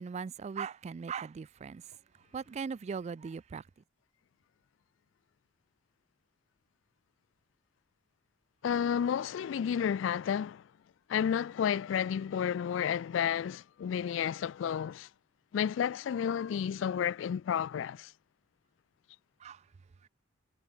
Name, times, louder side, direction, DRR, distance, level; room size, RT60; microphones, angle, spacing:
voice 1, 0.0-1.8 2.3-3.6 19.4-19.6, right 6 dB, 35° right, 0.3 m, -39 dB
voice 2, 8.6-10.6 11.1-15.1 15.5-18.1, left 8 dB, 75° left, 0.3 m, -31 dB
head